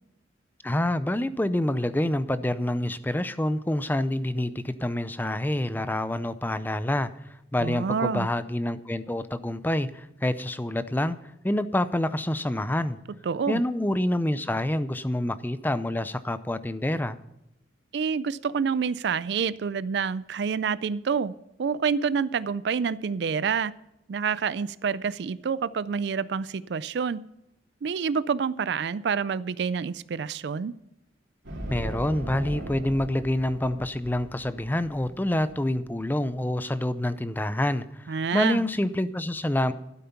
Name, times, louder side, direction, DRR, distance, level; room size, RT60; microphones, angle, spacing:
voice 1, 0.6-7.1 7.5-11.2 11.4-13.0 13.5-17.2 31.7-39.7, left 1 dB, 10° left, 14 dB, 0.5 m, -27 dB
voice 2, 7.6-8.3 13.2-13.6 17.9-21.3 21.6-23.7 24.1-27.2 27.8-30.7 38.1-38.6, right 6 dB, 60° right, 18 dB, 0.4 m, -27 dB
sound 1, 31.4-36.3, right 1 dB, 80° right, 3.0 m, -38 dB
12.5 x 9.3 x 5.8 m, 0.90 s
head